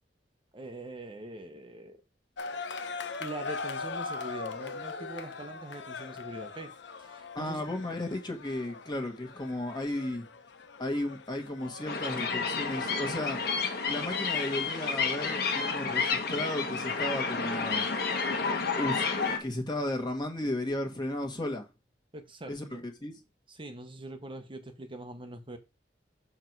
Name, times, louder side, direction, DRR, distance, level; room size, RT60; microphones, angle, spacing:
voice 1, 0.5-2.0 3.2-6.7 7.0-7.6 22.1-22.8 23.5-25.6, right 1 dB, 30° right, 1.0 m, -43 dB
sound 1, 2.4-19.2, left 4 dB, 75° left, 0.7 m, -43 dB
voice 2, 7.3-10.2 10.8-13.4 13.9-17.8 18.7-21.7 22.5-23.1, left 1 dB, 25° left, 1.5 m, -34 dB
sound 2, 11.8-19.4, left 5 dB, 60° left, 1.3 m, -30 dB
6.8 x 4.4 x 4.6 m
head